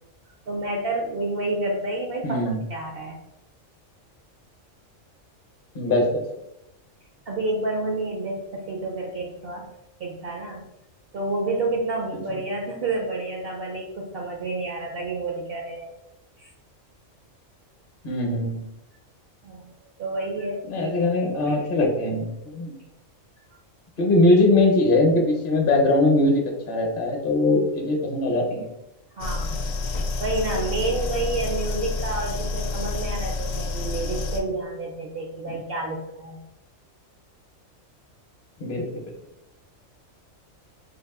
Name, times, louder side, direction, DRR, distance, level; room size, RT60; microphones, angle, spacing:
voice 1, 0.5-2.4 2.7-3.2 7.3-9.6 10.0-10.6 11.1-15.9 16.4-16.5 19.4-19.7 20.0-21.0 21.5-21.7 29.2-29.6 30.2-36.4, right 2 dB, 60° right, 0 dB, 0.7 m, -29 dB
voice 2, 2.2-2.6 5.7-6.2 12.3-12.4 18.0-18.7 20.7-22.8 24.0-28.7 35.5-35.6 38.6-39.0, left 2 dB, 50° left, 1 dB, 0.8 m, -21 dB
sound 1, 29.2-34.4, left 3 dB, 90° left, 0.4 m, -29 dB
3.4 x 2.5 x 3.5 m, 0.89 s
omnidirectional pair, 1.3 m